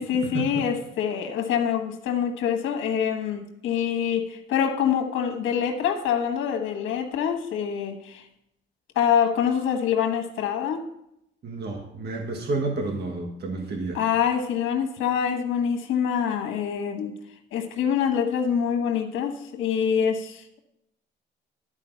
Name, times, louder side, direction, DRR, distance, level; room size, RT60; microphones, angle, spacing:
voice 1, 0.0-8.2 8.9-10.8 13.9-17.1 17.5-20.6, left 8 dB, 85° left, 5 dB, 1.3 m, -25 dB
voice 2, 11.4-14.0, right 3 dB, 55° right, 2 dB, 1.5 m, -30 dB
11.5 x 4.7 x 5.7 m, 0.79 s
cardioid pair, 90°, 20 cm